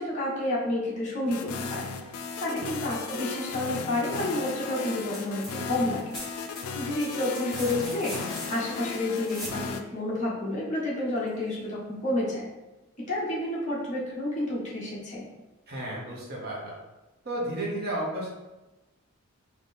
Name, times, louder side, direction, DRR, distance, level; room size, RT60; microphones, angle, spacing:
voice 1, 0.0-1.9 2.4-6.1 6.8-12.5 13.1-15.2, left 1 dB, 35° left, -7 dB, 1.2 m, -30 dB
sound 1, 1.3-9.8, left 5 dB, 90° left, 0.4 m, -36 dB
sound 2, 5.0-5.5 5.8-9.6 11.3-11.4, equal, ahead, 1.1 m, -41 dB
voice 2, 15.7-16.7 17.2-18.3, right 1 dB, 45° right, -4 dB, 1.0 m, -33 dB
4.0 x 3.0 x 3.5 m, 1.1 s
head